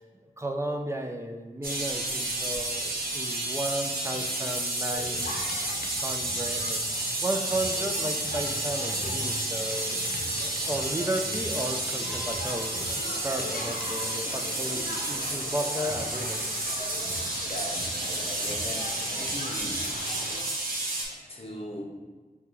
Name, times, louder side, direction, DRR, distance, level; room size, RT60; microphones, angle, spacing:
voice 1, 0.0-5.3 6.0-6.8 7.2-10.3 10.7-12.8 13.2-16.5, right 1 dB, 20° right, 4 dB, 0.4 m, -34 dB
sound 1, 1.6-21.0, right 2 dB, 85° right, 0.9 m, -31 dB
Crackle, 4.9-20.4, left 2 dB, 90° left, 0.5 m, -39 dB
voice 2, 17.5-20.0 21.0-21.9, left 1 dB, 40° left, 0 dB, 0.8 m, -39 dB
6.4 x 2.3 x 3.0 m, 1.4 s
wide cardioid pair, 50°, 15 cm